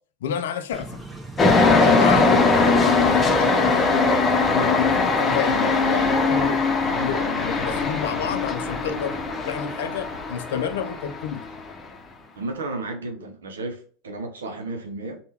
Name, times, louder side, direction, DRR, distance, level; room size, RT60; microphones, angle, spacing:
voice 1, 0.2-1.0 1.7-4.1 4.5-9.2 9.5-11.5, left 8 dB, 80° left, 0.4 m, -29 dB
sound 1, 0.7-6.6, right 2 dB, 5° right, 0.8 m, -39 dB
sound 2, 1.4-11.7, left 3 dB, 25° left, 0.7 m, -21 dB
voice 2, 12.4-15.2, right 2 dB, 90° right, 0.6 m, -33 dB
3.6 x 2.2 x 2.8 m
hypercardioid pair, 85°, 0 cm